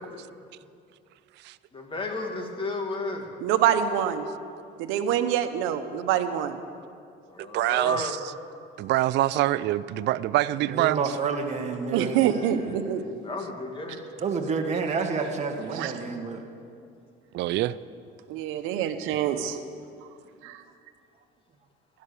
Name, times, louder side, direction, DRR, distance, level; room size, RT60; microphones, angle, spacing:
voice 1, 1.7-3.3 7.3-8.1 12.2-14.1, left 2 dB, 25° left, 3 dB, 2.1 m, -34 dB
voice 2, 3.4-4.3 4.8-6.6 11.9-13.0 15.7-15.9 18.3-19.6 20.4-20.6, right 10 dB, 85° right, 9 dB, 1.1 m, -25 dB
voice 3, 7.4-8.2 8.8-11.0 12.7-12.8 17.3-17.8, right 15 dB, 60° right, 16 dB, 0.4 m, -25 dB
voice 4, 10.5-12.3 14.2-16.5, right 5 dB, 35° right, 3 dB, 1.7 m, -29 dB
15.5 x 11.5 x 6.8 m, 2.4 s
cardioid pair, 120°, 20 cm